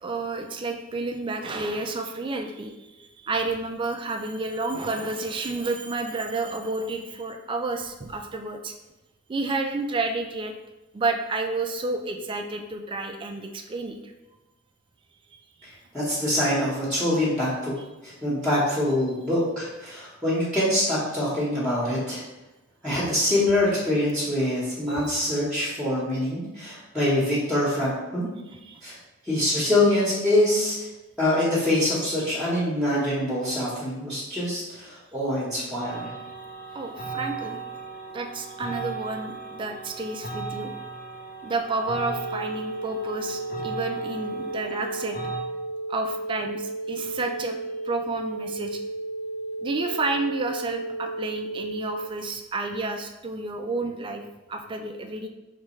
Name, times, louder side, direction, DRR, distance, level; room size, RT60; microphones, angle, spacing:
voice 1, 0.0-8.7 9.3-10.5 10.9-14.1 15.6-15.7 24.9-25.2 28.5-28.8 32.2-32.5 36.7-37.6 38.1-40.7 41.4-45.2 45.9-47.6 47.8-48.8 49.6-54.2 54.5-55.3, right 3 dB, 25° right, 5 dB, 0.3 m, -30 dB
voice 2, 15.6-17.7 18.0-22.2 22.8-28.2 28.8-29.0 29.2-30.9 31.2-36.1, left 1 dB, ahead, -8 dB, 1.0 m, -25 dB
sound 1, 35.8-45.4, right 4 dB, 50° left, 0.7 m, -37 dB
sound 2, 42.1-52.1, right 2 dB, 80° left, 0.3 m, -33 dB
4.7 x 3.3 x 3.1 m, 1.0 s
head